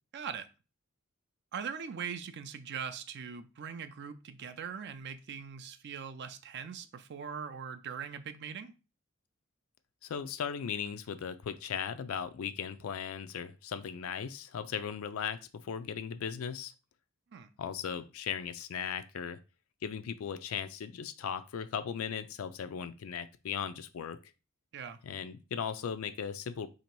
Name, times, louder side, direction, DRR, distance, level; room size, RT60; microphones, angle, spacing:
voice 1, 0.1-0.5 1.5-8.7 17.3-17.5 24.7-25.0, right 7 dB, 55° right, 9 dB, 0.4 m, -41 dB
voice 2, 10.0-16.7 17.6-19.4 19.8-24.2 25.0-26.7, left 7 dB, 85° left, 10 dB, 0.4 m, -37 dB
2.9 x 2.8 x 4.5 m, 0.31 s
head